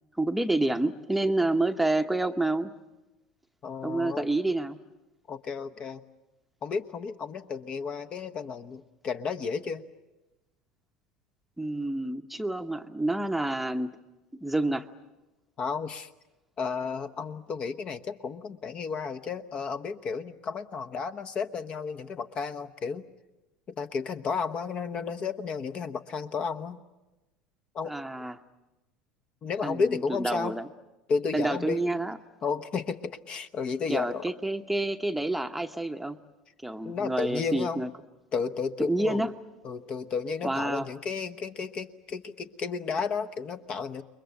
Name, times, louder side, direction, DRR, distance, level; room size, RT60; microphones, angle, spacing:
voice 1, 0.1-2.7 3.8-4.8 11.6-13.9 14.4-14.9 27.8-28.4 29.6-30.7 31.3-32.2 33.9-36.2 36.6-37.9 38.8-39.3 40.4-40.9, right 2 dB, 5° right, 7 dB, 1.0 m, -28 dB
voice 2, 3.6-4.3 5.3-6.0 6.6-9.8 15.6-16.1 16.6-23.1 23.7-26.8 27.7-28.0 29.4-30.5 31.1-31.8 32.4-34.2 36.8-37.8 38.3-39.3 39.6-44.0, left 5 dB, 35° left, 10 dB, 1.1 m, -32 dB
29.0 x 22.5 x 7.8 m, 1.0 s
figure-of-eight pair, 70°, 3 cm